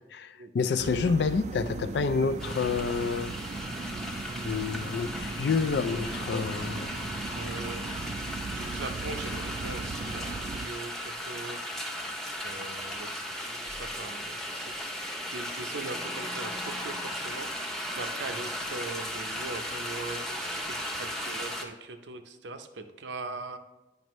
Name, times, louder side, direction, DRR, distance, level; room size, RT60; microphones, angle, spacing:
voice 1, 0.0-3.3 4.4-6.9, left 5 dB, 70° left, 0.4 m, -28 dB
sound 1, 0.8-10.7, right 3 dB, 40° right, 0.3 m, -37 dB
sound 2, 2.4-21.6, equal, ahead, 0.6 m, -36 dB
voice 2, 7.4-7.8 8.5-11.6 12.4-14.3 14.6-14.7 15.3-23.6, right 3 dB, 85° right, 0.6 m, -41 dB
9.2 x 5.3 x 3.1 m
head